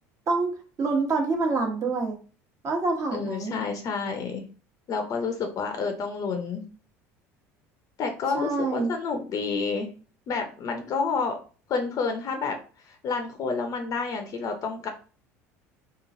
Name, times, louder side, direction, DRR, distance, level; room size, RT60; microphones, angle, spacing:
voice 1, 0.8-2.2 2.6-3.5 8.3-8.9, right 3 dB, 40° right, 2 dB, 1.1 m, -26 dB
voice 2, 3.1-4.4 4.9-6.6 8.0-9.9 10.3-11.4 11.7-12.6 12.9-14.9, left 4 dB, 45° left, 5 dB, 0.6 m, -29 dB
3.0 x 2.4 x 2.6 m, 0.37 s
hypercardioid pair, 80°, 8 cm